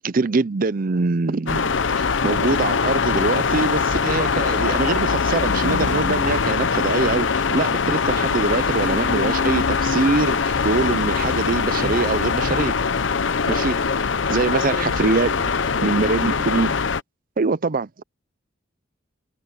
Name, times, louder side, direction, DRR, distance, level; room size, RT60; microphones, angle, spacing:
voice 1, 0.0-1.7 2.0-12.7 13.5-13.7 14.3-15.4 15.8-16.8 17.4-18.0, right 3 dB, 50° right, 0.6 m, -23 dB
sound 1, 1.5-17.0, left 5 dB, 80° left, 0.8 m, -22 dB
voice 2, 13.4-16.0, left 3 dB, 50° left, 1.8 m, -34 dB
head